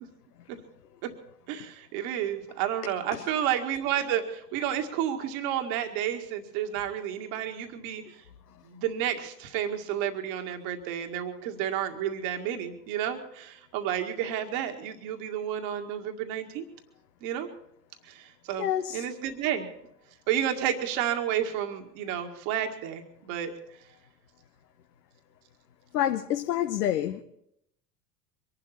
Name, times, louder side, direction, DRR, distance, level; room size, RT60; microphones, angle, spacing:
voice 1, 1.5-8.0 8.7-16.6 17.2-17.5 18.1-19.7 20.3-23.5, right 10 dB, 55° right, 2.1 m, -31 dB
voice 2, 18.6-19.0 25.9-27.2, left 11 dB, 70° left, 1.1 m, -27 dB
24.0 x 11.5 x 4.4 m
figure-of-eight pair, 75°, 49 cm